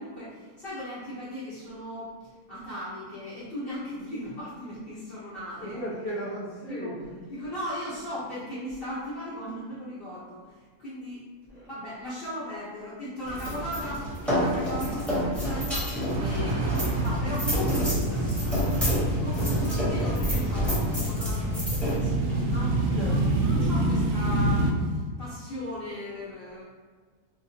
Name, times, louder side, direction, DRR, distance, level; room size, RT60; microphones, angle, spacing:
voice 1, 0.0-5.8 6.7-6.9 7.3-11.2 11.6-26.6, equal, 45° left, -14 dB, 1.4 m, -38 dB
voice 2, 5.6-7.2 7.9-8.0 11.5-11.7 22.9-23.2 23.6-23.7, equal, 70° left, -10 dB, 1.6 m, -36 dB
sound 1, 13.2-23.2, equal, ahead, 1.1 m, -29 dB
sound 2, 16.1-24.7, right 2 dB, 65° right, 0.8 m, -27 dB
sound 3, 18.0-21.7, left 3 dB, 25° right, 0.4 m, -35 dB
3.3 x 3.0 x 2.9 m, 1.5 s
omnidirectional pair, 1.5 m